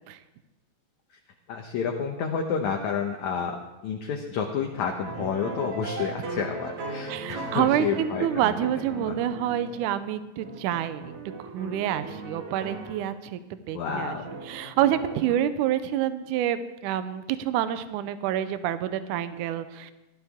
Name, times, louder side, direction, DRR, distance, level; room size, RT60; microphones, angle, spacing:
voice 1, 1.5-8.5 9.0-9.1 13.7-14.3, left 6 dB, 70° left, 2 dB, 1.9 m, -30 dB
sound 1, 5.0-10.1 10.4-13.1 13.9-15.4, right 3 dB, 55° right, 2.6 m, -38 dB
voice 2, 7.1-13.4 13.7-14.2 14.5-19.9, right 11 dB, 80° right, 12 dB, 1.8 m, -27 dB
17.5 x 12.5 x 3.6 m, 1.0 s
omnidirectional pair, 4.3 m